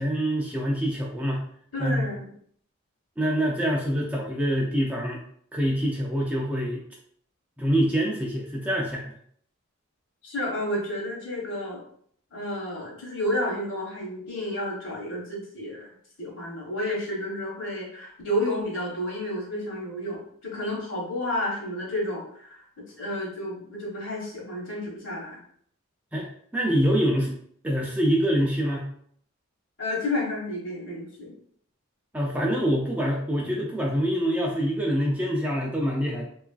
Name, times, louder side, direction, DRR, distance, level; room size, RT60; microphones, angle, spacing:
voice 1, 0.0-1.4 1.8-2.1 3.2-5.2 5.5-6.8 7.6-9.2 26.1-27.3 27.6-28.9 32.1-36.2, equal, 5° right, -2 dB, 0.3 m, -25 dB
voice 2, 1.7-2.3 10.2-11.8 12.3-15.9 16.2-25.4 29.8-31.3 33.4-33.5, left 1 dB, 60° left, -2 dB, 1.0 m, -31 dB
3.0 x 2.4 x 2.3 m, 0.62 s
head